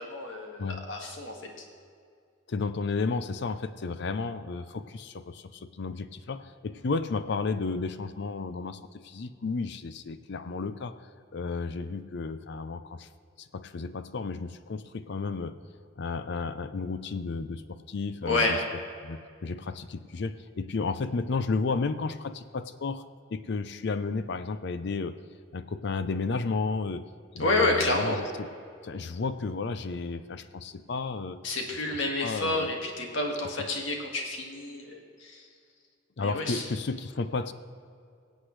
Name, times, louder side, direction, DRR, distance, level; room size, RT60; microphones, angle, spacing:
voice 1, 0.0-1.7 18.2-18.6 27.4-28.2 31.4-35.5 36.2-36.6, left 2 dB, 80° left, 1 dB, 1.9 m, -29 dB
voice 2, 2.5-10.9 11.3-13.1 13.4-15.6 16.0-18.6 19.0-23.0 23.3-25.2 25.5-27.0 27.3-28.5 28.8-31.4 32.2-32.7 36.2-37.5, left 4 dB, 60° left, 12 dB, 0.5 m, -32 dB
22.5 x 8.1 x 3.2 m, 2.3 s
head